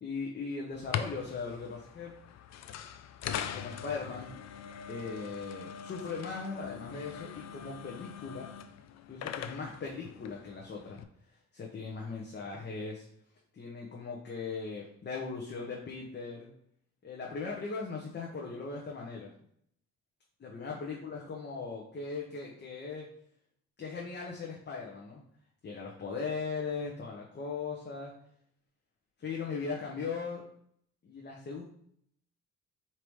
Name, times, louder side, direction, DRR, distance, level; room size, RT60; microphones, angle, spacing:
voice 1, 0.0-2.1 3.5-4.3 4.9-8.5 9.1-11.0 11.5-13.1 13.5-16.5 17.0-19.3 20.4-23.1 23.8-25.2 25.6-28.1 29.2-30.5 31.0-31.6, left 4 dB, 35° left, -1 dB, 0.8 m, -39 dB
sound 1, 0.7-11.0, left 8 dB, 60° left, 0.4 m, -42 dB
4.9 x 2.9 x 3.1 m, 0.67 s
cardioid pair, 90°, 30 cm